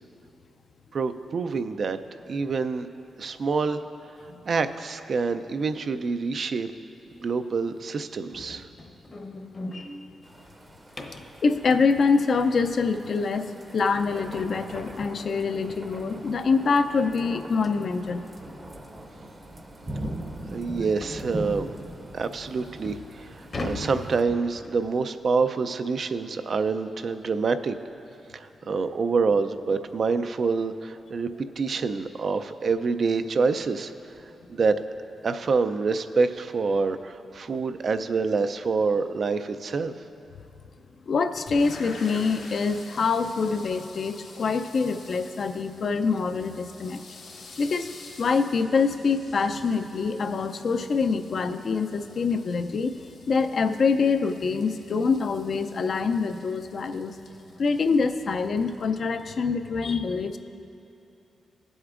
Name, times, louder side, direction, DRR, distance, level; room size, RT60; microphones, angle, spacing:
voice 1, 0.9-2.0 2.3-2.9 3.2-3.8 4.5-6.7 7.2-8.7 20.5-21.7 22.1-27.8 28.3-33.9 34.5-34.8 35.2-39.9, right 4 dB, 55° right, 10 dB, 0.4 m, -26 dB
sound 1, 8.3-11.4 14.2-14.3 14.8-15.0 15.3-15.4 15.9-16.0 17.1-17.2 17.6-17.8 18.4-18.5 18.9-19.0 19.5-19.6 21.0-21.3 22.0-22.1 22.6-24.9, left 2 dB, 40° left, 0.8 m, -38 dB
sound 2, 10.2-24.2, right 1 dB, 25° right, 0.7 m, -41 dB
voice 2, 11.4-18.2 41.1-47.0 47.6-47.9 48.2-53.0 53.3-57.2 57.6-60.4, left 4 dB, 55° left, 8 dB, 0.4 m, -25 dB
sound 3, 41.5-59.3, left 3 dB, 90° left, 1.4 m, -48 dB
17.5 x 7.9 x 2.5 m, 2.7 s
cardioid pair, 95°, 0 cm